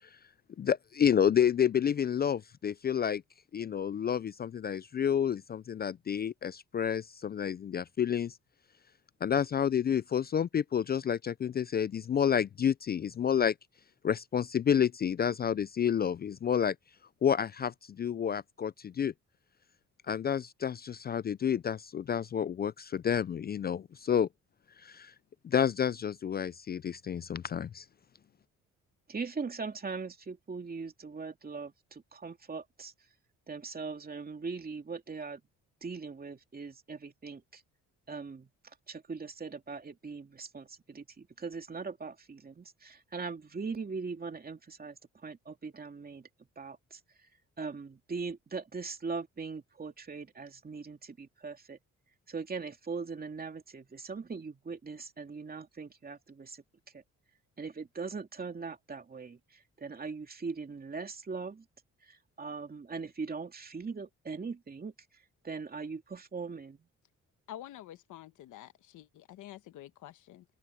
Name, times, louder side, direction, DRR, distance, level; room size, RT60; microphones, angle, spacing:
voice 1, 0.6-3.2 3.5-8.4 9.2-13.5 14.0-16.8 17.2-19.1 20.1-24.3 24.8-25.1 25.4-27.8, left 8 dB, 35° left, 0.4 m, -29 dB
voice 2, 29.1-32.9 33.5-35.4 35.8-37.6 38.1-46.3 46.6-47.0 47.6-51.8 52.3-56.6 56.9-57.0 57.6-61.7 62.0-64.9 65.4-66.9, right 4 dB, 30° right, 2.7 m, -40 dB
voice 3, 67.5-70.4, left 13 dB, 85° left, 1.3 m, -48 dB
cardioid pair, 90°, 30 cm